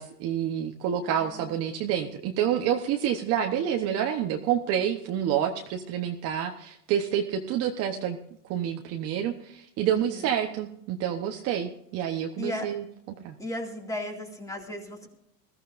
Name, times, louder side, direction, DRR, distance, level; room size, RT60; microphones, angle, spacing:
voice 1, 0.0-8.2 8.5-12.8 13.2-13.4, right 9 dB, 30° right, 4 dB, 1.1 m, -28 dB
voice 2, 1.0-1.6 9.9-10.3 12.4-12.7 13.4-15.1, left 1 dB, 5° left, 2 dB, 2.3 m, -36 dB
20.5 x 14.5 x 2.6 m, 0.74 s
supercardioid pair, 145°, 46 cm